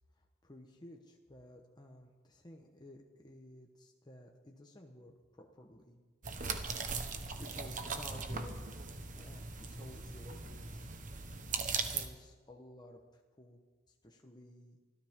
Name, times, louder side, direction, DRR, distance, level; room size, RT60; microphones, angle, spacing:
voice 1, 0.2-6.0 6.9-10.9 11.6-13.6 13.9-14.8, left 1 dB, 20° left, 1 dB, 1.1 m, -55 dB
sound 1, 6.2-12.0, right 4 dB, 40° right, 1.1 m, -39 dB
25.0 x 13.5 x 3.7 m, 1.4 s
head